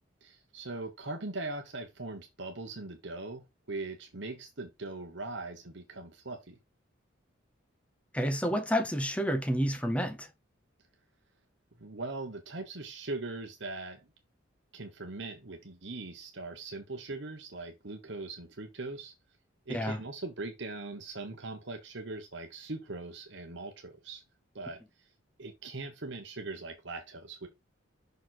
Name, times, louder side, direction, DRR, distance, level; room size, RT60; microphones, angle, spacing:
voice 1, 0.2-6.6 11.8-14.0 14.7-19.1 19.7-24.2 24.5-24.8 25.4-27.5, right 2 dB, 60° right, 1.2 m, -40 dB
voice 2, 8.1-10.3 19.7-20.0, equal, 5° left, 0.8 m, -29 dB
6.2 x 5.1 x 4.2 m
head